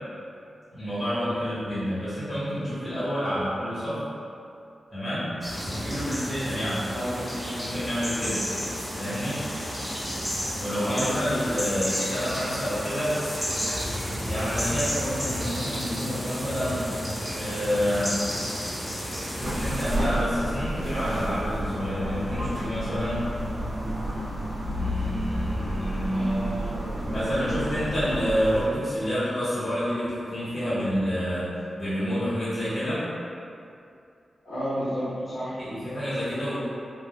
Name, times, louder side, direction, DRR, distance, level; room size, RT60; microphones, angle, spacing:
voice 1, 0.7-4.0 4.9-5.3 5.7-6.8 7.6-8.4 9.0-9.4 10.6-13.2 14.2-16.8 17.4-18.2 19.3-23.2 24.7-26.5 27.1-31.5 31.8-33.0 35.6-36.6, equal, 35° left, -14 dB, 1.3 m, -28 dB
sound 1, 5.4-20.0, equal, 20° left, 0.9 m, -32 dB
voice 2, 6.9-7.4 10.8-11.4 26.1-26.8 34.4-35.6, equal, 70° left, -15 dB, 1.5 m, -31 dB
sound 2, 19.4-28.7, equal, 90° right, 0.7 m, -30 dB
3.3 x 2.4 x 2.2 m, 2.5 s
cardioid pair, 65°, 0 cm